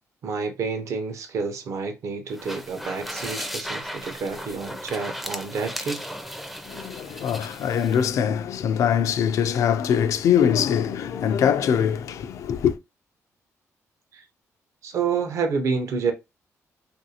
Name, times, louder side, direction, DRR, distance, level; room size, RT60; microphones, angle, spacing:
voice 1, 0.2-6.0 14.1-14.2 14.8-16.1, right 5 dB, 60° right, 0.7 m, -29 dB
sound 1, 2.3-8.1, equal, 5° right, 0.4 m, -36 dB
voice 2, 6.7-12.8, left 8 dB, 70° left, 0.4 m, -23 dB
3.1 x 2.5 x 2.8 m
cardioid pair, 135°, 6 cm